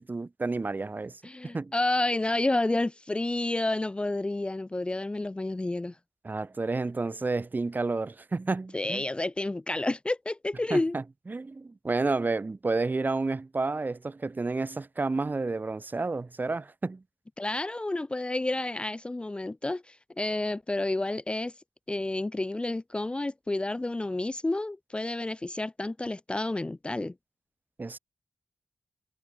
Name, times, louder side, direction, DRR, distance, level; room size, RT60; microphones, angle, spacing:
voice 1, 0.0-1.1 1.4-1.7 6.2-9.0 10.7-17.0 27.8-28.0, right 3 dB, 40° right, 2.1 m, -30 dB
voice 2, 1.2-6.0 8.7-10.9 17.4-21.5 21.9-27.1, left 2 dB, 20° left, 0.5 m, -30 dB
cardioid pair, 50°, 5 cm